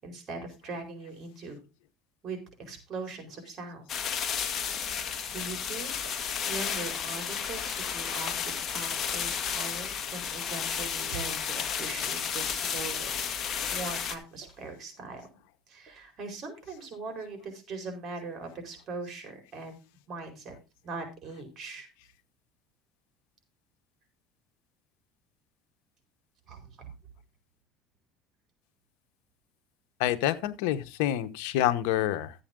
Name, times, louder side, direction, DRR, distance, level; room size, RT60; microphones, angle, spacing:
voice 1, 0.0-1.6 2.2-3.8 4.8-6.0 6.5-13.1 13.7-15.2 15.7-19.8 20.1-20.5 20.8-21.9 26.5-26.9, right 3 dB, 40° right, 4.6 m, -40 dB
sound 1, 3.9-14.2, left 7 dB, 35° left, 1.7 m, -32 dB
sound 2, 4.7-4.9 5.4-5.6 6.0-6.2 6.7-6.9 7.6-7.7 8.2-8.4 8.9-9.1 9.6-9.8 10.5-10.7 11.3-11.5 12.0-12.2 12.7-12.9 13.6-13.9 14.4-14.7 15.1-15.3 15.9-16.1, right 2 dB, 20° right, 6.5 m, -55 dB
voice 2, 30.0-32.3, left 13 dB, 80° left, 1.1 m, -27 dB
13.0 x 8.5 x 3.8 m
supercardioid pair, 125°, 0 cm